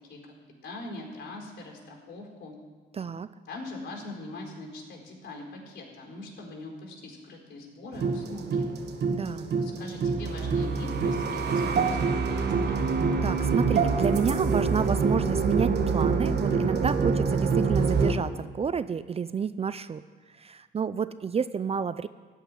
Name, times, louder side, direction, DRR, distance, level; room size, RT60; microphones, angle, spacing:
voice 1, 0.6-2.5 3.5-8.7 9.2-9.3 9.5-12.8, left 2 dB, 60° left, -1 dB, 4.4 m, -42 dB
voice 2, 2.9-3.3 9.1-9.5 13.2-20.0 20.4-22.1, right 6 dB, 30° right, 14 dB, 0.4 m, -30 dB
sound 1, 7.9-18.1, right 5 dB, 55° right, 1.4 m, -26 dB
14.0 x 5.7 x 9.7 m, 1.5 s
cardioid pair, 90°, 20 cm